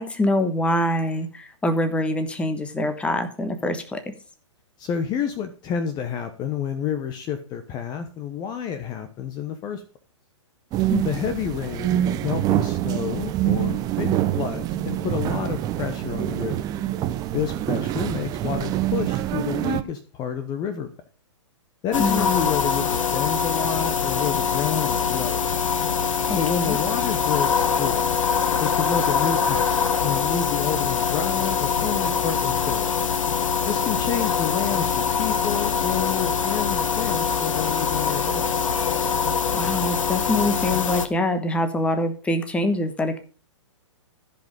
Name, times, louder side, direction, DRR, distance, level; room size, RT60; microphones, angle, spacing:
voice 1, 0.0-4.1 10.9-11.0 22.0-22.5 26.3-26.8 39.5-43.2, left 1 dB, 5° left, 8 dB, 1.2 m, -25 dB
voice 2, 4.8-9.8 11.0-16.6 17.3-20.9 21.8-25.5 26.3-28.0 28.6-29.7 30.0-32.9 33.7-34.9 35.2-38.4, left 8 dB, 25° left, 9 dB, 1.0 m, -29 dB
sound 1, 10.7-19.8, right 13 dB, 25° right, 0.7 m, -25 dB
sound 2, 21.9-41.1, left 6 dB, 85° left, 1.2 m, -23 dB
14.5 x 5.3 x 5.3 m, 0.37 s
hypercardioid pair, 135°, 16 cm